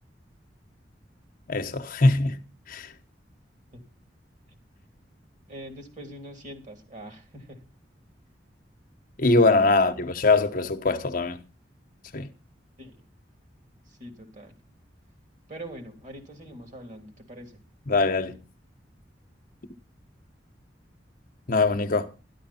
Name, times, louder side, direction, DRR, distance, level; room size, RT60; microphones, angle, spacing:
voice 1, 1.5-2.4 2.7-2.9 9.2-11.4 12.1-12.3 17.9-18.4 21.5-22.1, left 3 dB, 50° left, 1.0 m, -22 dB
voice 2, 5.5-7.6 12.8-13.1 13.9-14.5 15.5-17.6, right 1 dB, 45° right, 3.2 m, -43 dB
13.0 x 11.5 x 4.3 m
head